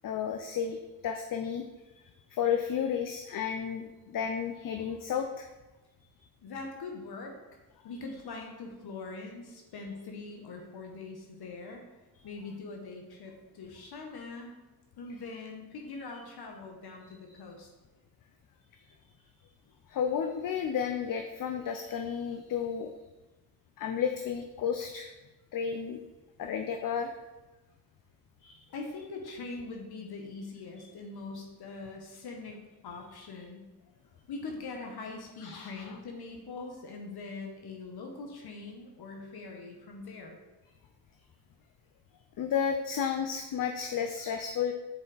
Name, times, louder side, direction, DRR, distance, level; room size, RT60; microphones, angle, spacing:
voice 1, 0.0-1.6 2.3-5.5 19.9-22.9 23.8-25.1 25.5-26.0 26.4-27.1 28.4-28.6 35.4-35.7 42.4-44.7, left 7 dB, 55° left, 6 dB, 0.6 m, -32 dB
voice 2, 6.4-7.4 7.8-11.8 12.2-14.5 15.0-17.7 28.7-33.6 34.3-40.4, left 3 dB, 75° left, 2 dB, 1.1 m, -42 dB
7.2 x 4.4 x 3.9 m, 1.1 s
cardioid pair, 65°, 39 cm